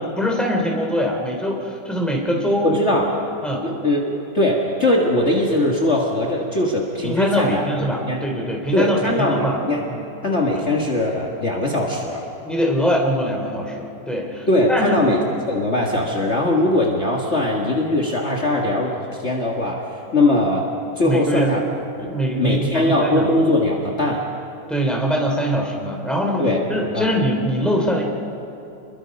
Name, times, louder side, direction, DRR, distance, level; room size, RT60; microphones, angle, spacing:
voice 1, 0.2-2.7 3.4-3.7 7.0-9.6 9.9-10.1 12.4-15.0 21.0-21.5 22.1-23.3 24.7-28.0, equal, ahead, 0 dB, 3.1 m, -23 dB
voice 2, 2.6-3.1 3.6-7.6 8.1-8.2 8.7-9.8 10.2-12.3 14.5-15.2 15.5-19.9 20.1-20.7 21.0-21.6 22.0-24.2 26.4-26.6 26.9-27.1, left 1 dB, 40° left, -1 dB, 2.0 m, -20 dB
29.0 x 22.5 x 5.3 m, 3.0 s
omnidirectional pair, 1.9 m